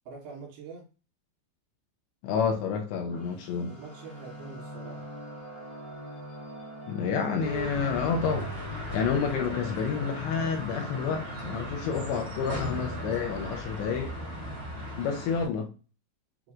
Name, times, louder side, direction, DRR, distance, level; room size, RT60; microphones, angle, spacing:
voice 1, 0.1-0.9 3.7-5.1, right 5 dB, 70° right, 3.1 m, -44 dB
voice 2, 2.2-3.7 6.9-14.1 15.0-15.7, left 6 dB, 80° left, 2.7 m, -29 dB
sound 1, 3.1-15.1, equal, 40° left, 1.2 m, -46 dB
sound 2, 7.4-15.4, equal, 50° right, 0.7 m, -36 dB
7.6 x 2.6 x 2.4 m
omnidirectional pair, 5.3 m